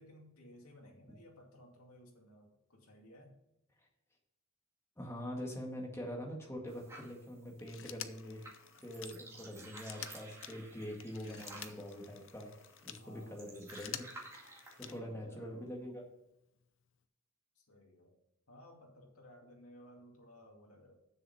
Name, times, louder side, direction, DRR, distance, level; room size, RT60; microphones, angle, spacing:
voice 1, 0.0-3.4 12.9-13.5 14.8-15.7 17.5-18.2 18.5-20.9, left 1 dB, 80° left, 0 dB, 2.5 m, -57 dB
voice 2, 5.0-8.5 8.8-12.5 12.8-14.1 14.8-16.0, equal, 10° left, -1 dB, 1.9 m, -44 dB
sound 1, 6.7-15.0, right 2 dB, 15° right, 2.1 m, -54 dB
Telephone, 7.6-13.1 13.5-15.2 16.5-16.6, left 11 dB, 60° left, 0.6 m, -49 dB
7.4 x 6.8 x 5.7 m, 0.89 s
head